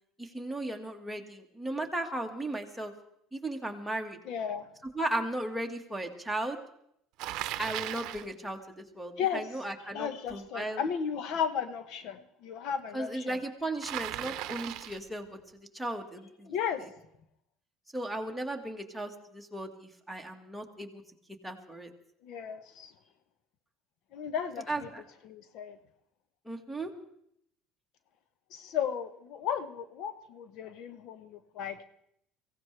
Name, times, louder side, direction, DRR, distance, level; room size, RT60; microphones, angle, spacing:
voice 1, 0.2-2.9 3.3-4.2 4.9-6.6 7.6-10.8 12.9-15.3 15.7-16.5 17.9-21.0 21.4-21.9 24.7-25.0 26.4-26.9, right 1 dB, ahead, 1 dB, 1.7 m, -36 dB
voice 2, 4.3-4.7 9.2-9.4 9.9-13.4 16.4-16.8 22.2-22.9 24.1-24.9 25.2-25.8 28.5-31.8, left 8 dB, 65° left, 11 dB, 1.0 m, -34 dB
Bicycle, 7.2-8.3 13.8-15.1, right 14 dB, 65° right, 0.7 m, -37 dB
23.5 x 16.5 x 3.4 m, 0.73 s
cardioid pair, 120°, 0 cm